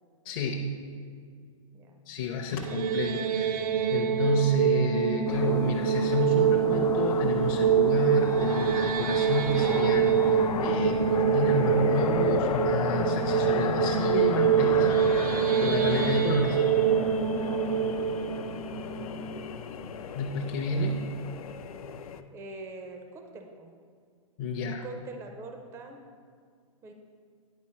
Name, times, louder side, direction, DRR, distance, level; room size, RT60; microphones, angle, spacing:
voice 1, 0.2-0.7 2.1-14.9 15.6-16.7 20.1-21.0 24.4-24.8, left 2 dB, 40° left, 0 dB, 0.6 m, -30 dB
sound 1, 2.5-19.6, right 8 dB, 80° right, 0.5 m, -25 dB
sound 2, 5.3-22.2, left 7 dB, 85° left, 0.4 m, -34 dB
voice 2, 22.1-23.7 24.6-26.0 26.8-26.9, right 3 dB, 15° right, 4 dB, 0.4 m, -44 dB
9.7 x 4.3 x 4.2 m, 2.1 s
hypercardioid pair, 140°, 18 cm